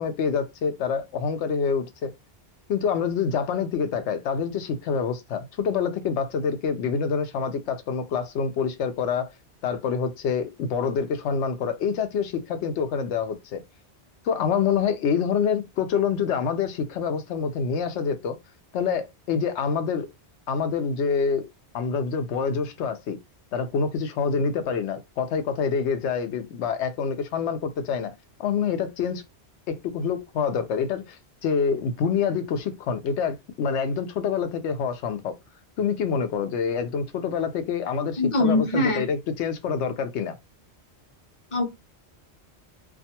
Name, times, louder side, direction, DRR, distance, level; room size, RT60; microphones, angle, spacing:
voice 1, 0.0-2.1 2.7-9.3 9.6-13.6 14.2-18.4 18.7-20.1 20.5-21.5 21.7-23.2 23.5-28.1 28.4-29.2 29.7-35.4 35.8-40.4, left 6 dB, 85° left, 0.9 m, -26 dB
voice 2, 38.2-39.0 41.5-41.7, left 2 dB, 30° left, 0.7 m, -22 dB
2.4 x 2.3 x 2.8 m
omnidirectional pair, 1.1 m